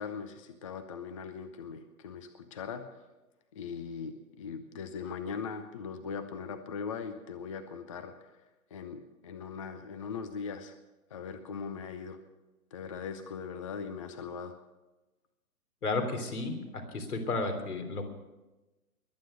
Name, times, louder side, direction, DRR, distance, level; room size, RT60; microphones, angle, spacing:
voice 1, 0.0-2.9 3.5-8.4 8.7-10.8 11.1-12.2 12.7-14.5, left 6 dB, 20° left, 10 dB, 0.5 m, -40 dB
voice 2, 15.8-16.6 16.9-18.1, left 3 dB, 70° left, 5 dB, 3.4 m, -32 dB
22.0 x 9.1 x 6.5 m, 1.1 s
figure-of-eight pair, 130°, 46 cm